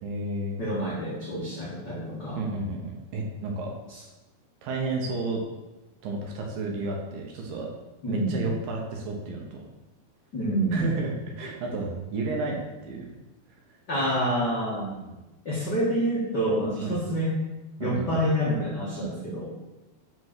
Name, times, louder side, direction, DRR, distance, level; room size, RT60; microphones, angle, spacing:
voice 1, 0.0-0.6 2.4-3.7 4.6-5.4 6.0-7.7 8.1-9.7 10.7-13.1 13.5-13.8 15.0-15.2 16.8-16.9 17.8-18.2, right 3 dB, 70° right, 0 dB, 2.5 m, -32 dB
voice 2, 0.6-2.4 3.9-4.0 8.0-8.3 10.3-10.9 13.9-14.9 15.4-17.4 17.8-19.5, equal, 55° left, -7 dB, 1.1 m, -27 dB
6.4 x 5.1 x 6.0 m, 1.1 s
omnidirectional pair, 4.6 m